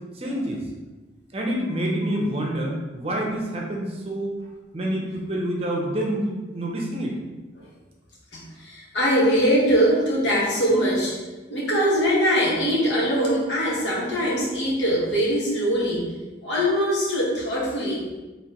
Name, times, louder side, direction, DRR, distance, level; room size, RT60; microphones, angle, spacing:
voice 1, 0.2-0.6 1.3-4.3 4.7-7.2, right 1 dB, 30° right, -1 dB, 0.7 m, -27 dB
voice 2, 8.3-11.2 11.5-16.1 16.4-18.0, equal, 75° left, -5 dB, 1.2 m, -22 dB
4.8 x 3.1 x 3.0 m, 1.2 s
head